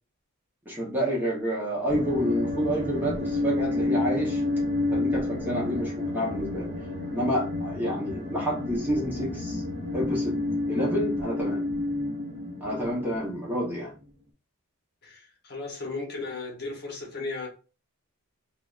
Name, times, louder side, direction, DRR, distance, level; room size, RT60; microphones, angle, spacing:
voice 1, 0.7-4.4 4.9-6.7 7.1-9.6 9.9-11.6 12.6-13.9, equal, 10° right, 0.8 m, -29 dB
sound 1, 1.9-13.9, left 2 dB, 45° right, 0.8 m, -30 dB
voice 2, 15.0-17.5, left 3 dB, 45° left, 0.9 m, -35 dB
3.3 x 2.1 x 2.4 m
head